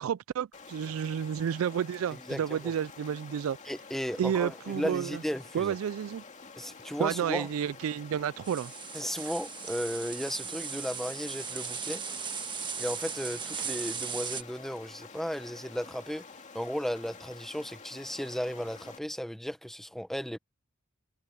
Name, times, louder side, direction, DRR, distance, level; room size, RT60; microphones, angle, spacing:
voice 1, 0.0-3.6 4.2-5.2 5.5-6.2 7.0-8.7 9.2-9.3, right 8 dB, 85° right, 0.3 m, -31 dB
Stream, 0.5-19.0, left 4 dB, 35° left, 2.4 m, -49 dB
voice 2, 2.1-2.7 3.6-5.8 6.6-7.5 8.9-12.0 12.8-16.2 16.5-20.4, equal, ahead, 1.1 m, -35 dB
sound 1, 8.4-14.4, right 6 dB, 25° right, 1.4 m, -37 dB
head